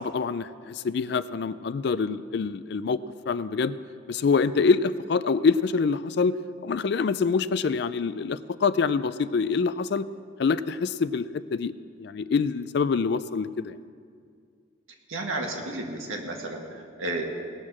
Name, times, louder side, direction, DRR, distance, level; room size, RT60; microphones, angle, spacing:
voice 1, 0.0-3.0 3.3-3.8 4.1-6.4 6.6-10.1 10.4-11.7 12.0-13.8, left 5 dB, 55° left, 15 dB, 0.3 m, -25 dB
voice 2, 15.1-17.2, right 2 dB, 85° right, 1 dB, 1.6 m, -32 dB
18.5 x 6.5 x 6.0 m, 2.2 s
head